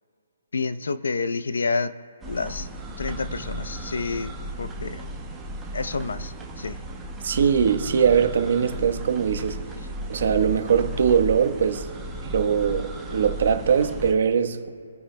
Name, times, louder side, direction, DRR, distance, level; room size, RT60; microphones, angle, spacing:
voice 1, 0.5-1.9 2.3-2.7 3.0-4.3 4.6-5.1 5.7-6.8, left 4 dB, 85° left, 0.6 m, -29 dB
sound 1, 2.2-14.1, right 1 dB, 5° right, 1.1 m, -35 dB
voice 2, 7.2-9.6 10.1-11.9 12.3-14.7, right 7 dB, 55° right, 1.1 m, -21 dB
26.0 x 10.0 x 2.2 m
hypercardioid pair, 165°, 0 cm